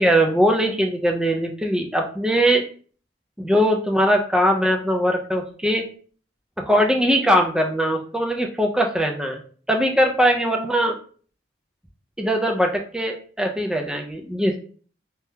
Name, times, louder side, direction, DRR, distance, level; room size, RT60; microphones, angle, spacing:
voice 1, 0.0-2.6 3.4-5.8 6.7-9.4 9.7-10.9 12.2-14.6, equal, 5° right, 2 dB, 0.3 m, -20 dB
2.7 x 2.2 x 3.4 m, 0.43 s
head